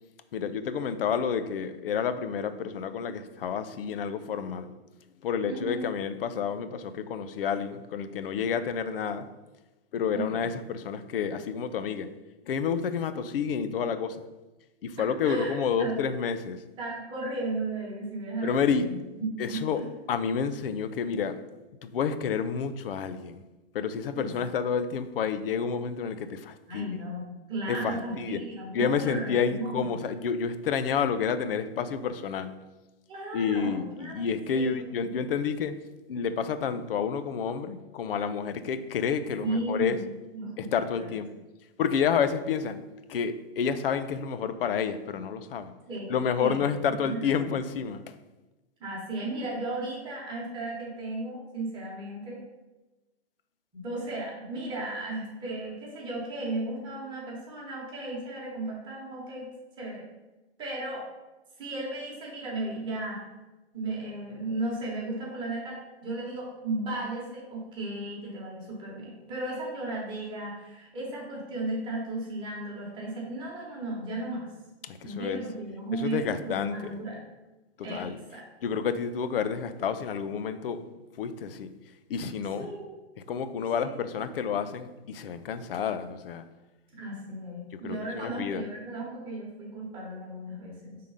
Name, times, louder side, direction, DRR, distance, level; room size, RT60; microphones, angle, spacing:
voice 1, 0.3-4.7 5.2-9.3 9.9-12.1 12.5-14.2 14.8-16.6 18.4-18.9 19.4-21.4 21.8-23.4 23.7-27.0 27.7-28.4 28.7-32.5 33.3-35.8 36.1-40.0 40.6-41.3 41.8-42.8 43.1-45.7 46.1-48.2 74.8-75.4 75.9-77.0 77.8-78.2 78.6-81.7 82.1-82.7 83.3-86.5 87.7-88.7, left 6 dB, 60° left, 11 dB, 0.5 m, -29 dB
voice 2, 5.5-5.8 10.1-10.5 15.2-16.0 16.8-19.8 24.1-24.3 26.7-29.9 33.1-34.1 34.5-35.1 39.4-40.0 40.3-41.1 45.9-46.6 47.0-47.5 48.8-52.4 53.7-59.5 59.8-60.1 60.6-61.1 61.6-63.2 63.7-74.5 75.0-77.2 77.8-78.4 82.6-82.9 83.8-84.2 86.9-91.0, right 2 dB, 15° right, -4 dB, 1.2 m, -35 dB
5.0 x 3.8 x 5.5 m, 1.1 s
hypercardioid pair, 160°, 32 cm